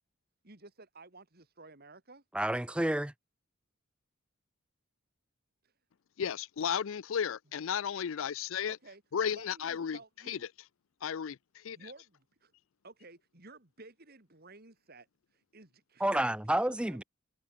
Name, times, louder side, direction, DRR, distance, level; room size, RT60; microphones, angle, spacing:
voice 1, 0.4-2.2 5.6-5.7 8.7-9.0 9.3-10.4 11.7-12.5 12.8-17.0, right 2 dB, 45° right, 3.1 m, -54 dB
voice 2, 2.3-3.1 16.0-17.0, right 1 dB, 5° right, 0.4 m, -29 dB
voice 3, 6.2-8.8 9.1-10.0 10.3-10.4 11.0-11.8, left 7 dB, 65° left, 0.4 m, -34 dB
head